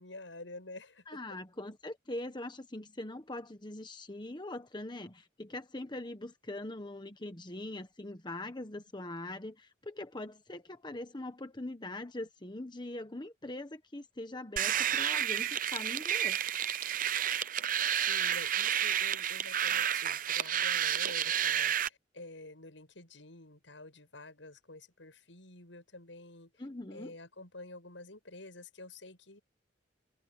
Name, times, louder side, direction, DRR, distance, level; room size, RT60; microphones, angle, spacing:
voice 1, 0.0-1.2 17.6-17.7 17.9-26.6 26.9-29.4, left 2 dB, 85° left, 7.4 m, -49 dB
voice 2, 1.1-16.4 26.6-27.1, left 1 dB, 25° left, 1.2 m, -42 dB
sound 1, 14.6-21.9, right 10 dB, 45° right, 0.7 m, -30 dB
head